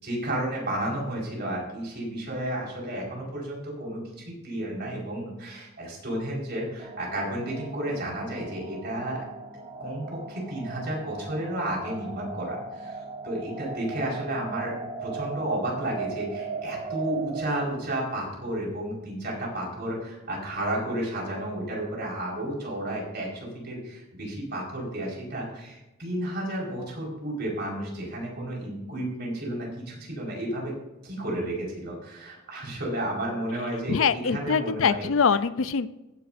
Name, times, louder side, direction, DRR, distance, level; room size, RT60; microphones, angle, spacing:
voice 1, 0.0-9.2 9.8-30.8 31.0-35.1, right 1 dB, 50° right, -3 dB, 4.6 m, -32 dB
sound 1, 6.8-17.7, right 4 dB, 25° right, 1.7 m, -38 dB
voice 2, 33.9-35.9, left 6 dB, 70° left, 14 dB, 0.5 m, -23 dB
15.0 x 10.5 x 2.6 m, 1.0 s
head